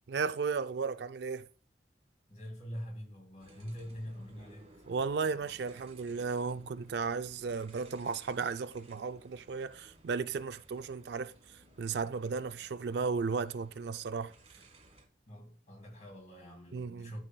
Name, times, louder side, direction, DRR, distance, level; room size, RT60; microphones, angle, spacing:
voice 1, 0.1-1.5 4.9-11.3 11.8-14.3 16.7-17.1, right 5 dB, 60° right, 0.3 m, -34 dB
voice 2, 2.3-4.8 15.3-17.2, equal, 40° left, 2.8 m, -44 dB
sound 1, 3.4-15.1, right 2 dB, 30° right, 1.5 m, -59 dB
12.0 x 5.6 x 2.2 m
head